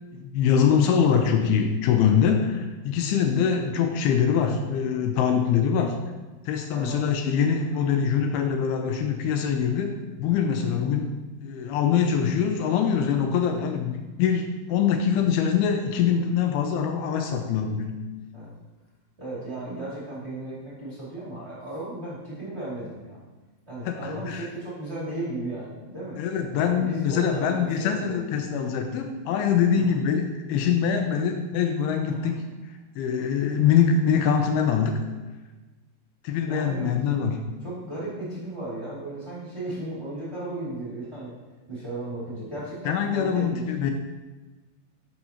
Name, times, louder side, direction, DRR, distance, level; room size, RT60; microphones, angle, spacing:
voice 1, 0.1-6.0 6.5-11.2 11.4-18.1 23.9-24.5 26.2-32.4 33.0-35.0 36.2-37.4 42.9-43.9, left 7 dB, 80° left, 5 dB, 2.4 m, -24 dB
voice 2, 6.7-7.0 7.7-7.9 18.3-18.5 19.2-23.2 23.7-26.2 26.7-28.7 29.7-30.0 32.1-32.3 36.4-36.9 37.6-41.3 41.7-43.7, right 1 dB, 20° right, -9 dB, 2.0 m, -35 dB
11.5 x 6.1 x 2.9 m, 1.2 s
omnidirectional pair, 4.6 m